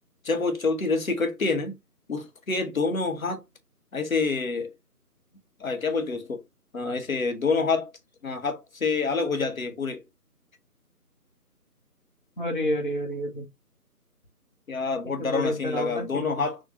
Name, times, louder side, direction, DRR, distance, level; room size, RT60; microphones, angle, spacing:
voice 1, 0.2-1.7 2.1-3.4 3.9-4.7 5.6-6.4 6.7-7.9 8.2-10.0 14.7-16.6, left 4 dB, 60° left, 1.2 m, -27 dB
voice 2, 12.4-13.5 15.0-16.4, equal, 30° left, 1.2 m, -29 dB
6.3 x 2.6 x 2.7 m
figure-of-eight pair, 160°, 47 cm